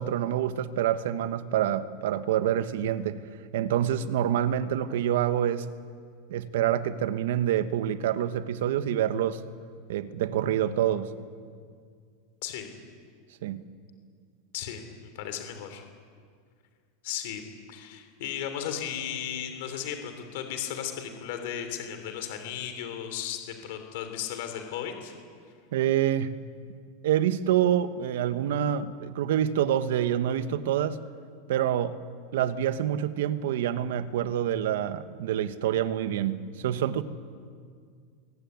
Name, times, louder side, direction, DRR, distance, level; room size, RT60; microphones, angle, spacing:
voice 1, 0.0-3.2 3.5-5.7 6.3-9.4 9.9-11.1 13.4-13.6 25.7-26.4 27.0-31.0 31.5-31.9 32.3-37.0, right 10 dB, 65° right, 12 dB, 1.2 m, -27 dB
voice 2, 15.1-15.8 17.0-17.4 17.7-25.1, left 9 dB, 50° left, 7 dB, 3.1 m, -35 dB
23.0 x 17.5 x 9.5 m, 2.1 s
supercardioid pair, 180°, 0 cm